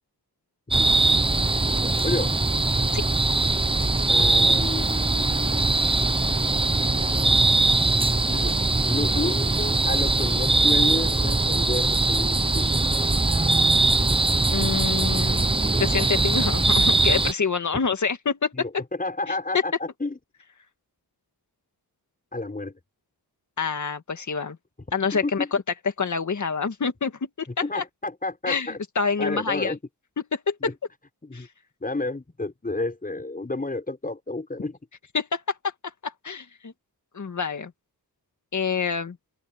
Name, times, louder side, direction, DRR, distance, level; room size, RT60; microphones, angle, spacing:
sound 1, 0.7-17.3, right 2 dB, 15° right, 0.7 m, -21 dB
voice 1, 1.8-2.3 4.1-6.2 8.3-8.6 8.9-12.7 18.5-20.2 22.3-22.7 25.2-25.5 27.5-28.8 29.2-29.8 30.6-30.7 31.2-31.5 31.8-34.8, left 2 dB, 20° left, 6.3 m, -31 dB
voice 2, 14.5-15.5 15.8-18.5 19.3-19.4 23.6-24.6 24.9-25.4 26.0-27.5 27.7-27.8 28.5-29.7 30.3-30.6 31.3-31.5 35.1-35.4 36.0-36.7 37.1-37.7 38.5-39.2, left 5 dB, 45° left, 1.9 m, -27 dB
wide cardioid pair, 175°, 39 cm